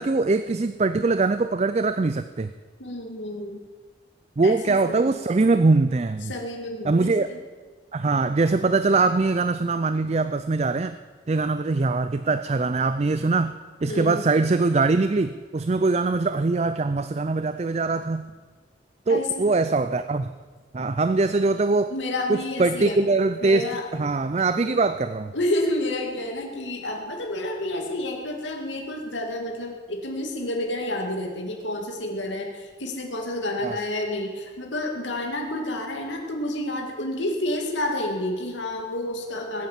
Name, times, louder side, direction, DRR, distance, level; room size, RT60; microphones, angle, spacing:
voice 1, 0.0-2.5 4.4-6.3 6.8-7.3 7.9-11.0 11.3-13.5 13.8-18.2 19.1-20.3 20.7-21.9 22.3-25.3 33.6-33.7, right 3 dB, 35° right, 12 dB, 0.4 m, -22 dB
voice 2, 2.8-3.6 4.4-5.0 6.2-7.4 13.8-14.2 19.1-19.4 21.9-23.0 23.4-23.9 24.6-24.8 25.3-39.7, left 1 dB, 80° left, 1 dB, 2.2 m, -29 dB
20.5 x 9.4 x 7.4 m, 1.4 s
head